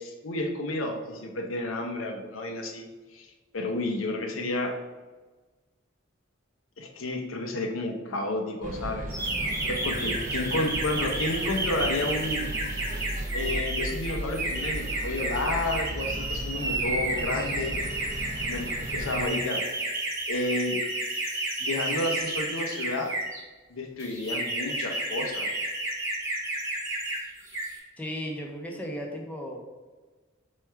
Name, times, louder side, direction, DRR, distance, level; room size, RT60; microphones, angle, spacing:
voice 1, 0.0-2.8 3.1-4.7 6.8-9.1 9.7-12.5 13.3-17.8 18.5-19.6 20.3-20.8 21.6-23.1 23.7-25.5, left 2 dB, 85° left, 3 dB, 0.6 m, -31 dB
sound 1, 8.6-19.3, right 1 dB, 40° right, 0.4 m, -36 dB
sound 2, 9.1-23.4 24.0-27.2 27.5-27.8, right 2 dB, 15° right, 1.0 m, -31 dB
voice 2, 28.0-29.6, equal, 10° left, 1 dB, 0.5 m, -35 dB
4.6 x 2.3 x 4.4 m, 1.3 s
head